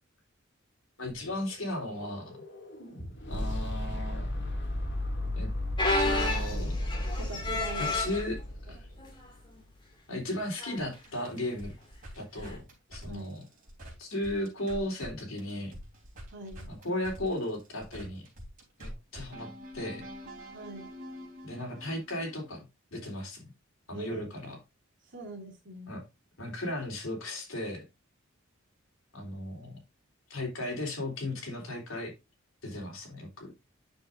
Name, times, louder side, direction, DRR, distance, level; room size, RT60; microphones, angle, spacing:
voice 1, 1.0-2.4 3.3-4.3 5.3-5.5 6.0-6.8 7.8-8.4 8.7-8.9 10.1-11.7 12.2-12.6 12.9-13.4 14.0-15.7 16.7-18.3 18.8-20.0 21.4-22.6 22.9-23.4 23.9-24.6 25.9-26.0 26.4-27.8 29.1-29.8 30.3-32.1 32.6-33.5, left 1 dB, 75° left, 3.5 m, -35 dB
sound 1, 1.1-9.2, left 1 dB, 60° left, 2.4 m, -34 dB
sound 2, 5.8-8.3 9.0-9.3 9.6-9.7 10.6-10.8 12.5-12.6, left 2 dB, 25° left, 2.2 m, -30 dB
voice 2, 7.2-8.0 8.7-8.8 13.1-13.4 16.3-16.7 20.5-20.9 23.9-24.3 25.0-26.0, right 2 dB, 60° right, 2.7 m, -42 dB
sound 3, 10.8-15.1 15.4-22.6, equal, 45° right, 3.6 m, -46 dB
9.3 x 6.8 x 2.6 m
head